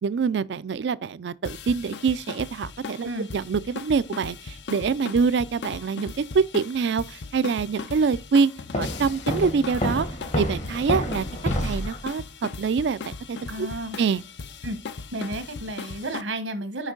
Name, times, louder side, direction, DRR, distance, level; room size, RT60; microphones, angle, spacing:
voice 1, 0.0-10.1 10.3-11.2 11.6-13.7 14.0-14.2, right 5 dB, 65° right, 0.4 m, -25 dB
sound 1, 1.4-16.2, left 4 dB, 65° left, 0.6 m, -38 dB
Walk footsteps, 8.7-12.0, left 1 dB, 40° left, 1.0 m, -28 dB
voice 2, 13.5-14.0 14.6-14.8 15.1-16.9, right 1 dB, 85° right, 1.2 m, -32 dB
6.1 x 5.1 x 3.8 m
head